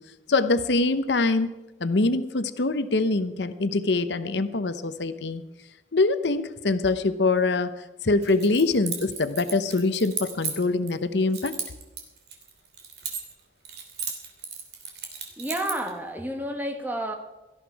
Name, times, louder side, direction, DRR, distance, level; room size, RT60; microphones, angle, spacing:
voice 1, 0.3-1.5 1.8-5.4 5.9-7.7 8.0-11.5, left 3 dB, 80° left, 11 dB, 0.8 m, -24 dB
Keys jangling, 8.2-11.0 11.3-13.4 13.7-15.9, right 6 dB, 65° right, 2.9 m, -35 dB
voice 2, 15.4-17.1, right 1 dB, 10° right, 5 dB, 1.6 m, -30 dB
17.5 x 13.5 x 4.7 m, 1.1 s
head